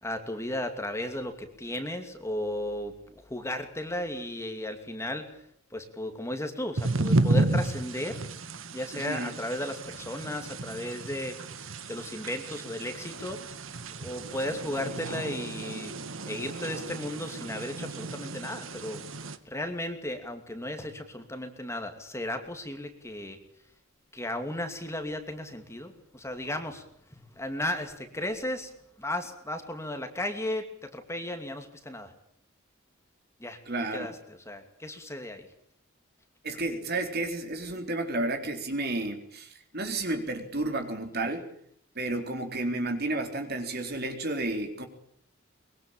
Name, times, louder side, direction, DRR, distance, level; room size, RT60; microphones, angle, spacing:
voice 1, 0.0-5.4 5.7-8.2 8.7-13.6 14.0-15.9 16.3-23.4 24.1-26.8 27.1-28.7 29.0-32.1 33.4-35.5, left 1 dB, 15° left, 6 dB, 2.6 m, -35 dB
sound 1, 6.8-19.4, right 2 dB, 65° right, 1.7 m, -32 dB
voice 2, 8.9-9.3 33.7-34.1 36.4-41.4 42.0-44.9, right 2 dB, 50° right, 6 dB, 3.9 m, -31 dB
23.5 x 22.5 x 8.9 m, 0.69 s
head